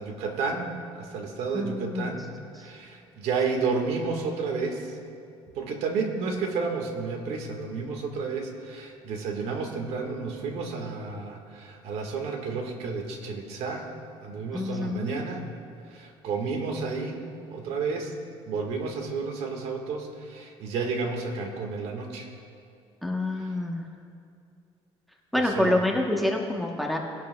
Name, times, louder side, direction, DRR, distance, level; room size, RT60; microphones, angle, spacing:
voice 1, 0.0-2.3 2.6-5.0 5.5-13.9 14.2-15.5 15.9-18.1 18.4-22.3 23.3-23.6 25.3-25.8, right 4 dB, 75° right, 3 dB, 1.5 m, -31 dB
voice 2, 1.5-2.1 14.5-15.2 23.0-23.9 25.3-27.0, left 1 dB, ahead, 1 dB, 0.9 m, -27 dB
19.0 x 11.0 x 2.2 m, 2.5 s
cardioid pair, 135°, 11 cm